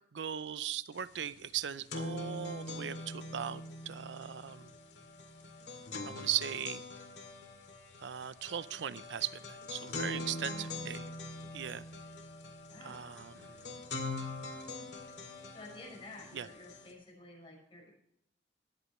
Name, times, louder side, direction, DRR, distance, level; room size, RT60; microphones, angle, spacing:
voice 1, 0.1-4.7 6.0-6.8 8.0-11.1 11.5-11.8 12.8-13.6 16.3-16.5, right 10 dB, 85° right, 16 dB, 0.5 m, -38 dB
sound 1, 1.0-1.1 1.4-16.9, left 2 dB, 75° left, 2.1 m, -43 dB
voice 2, 10.0-10.8 12.7-13.0 15.5-17.9, left 2 dB, 30° left, -1 dB, 5.8 m, -51 dB
21.0 x 8.3 x 3.1 m, 0.71 s
head